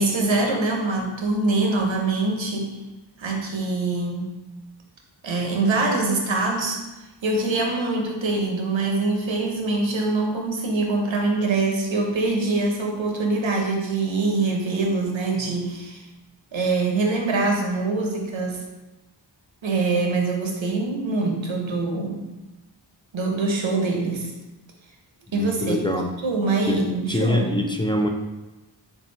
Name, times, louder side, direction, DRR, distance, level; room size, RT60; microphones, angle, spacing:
voice 1, 0.0-2.8 3.2-4.3 5.2-6.8 7.2-16.0 16.5-18.6 19.6-22.2 23.1-24.3 25.3-27.5, right 3 dB, 85° right, 1 dB, 0.8 m, -24 dB
voice 2, 25.3-26.1 26.7-26.8 27.1-28.1, left 1 dB, 10° left, 2 dB, 0.4 m, -24 dB
3.5 x 2.7 x 4.4 m, 1.1 s
wide cardioid pair, 50°, 45 cm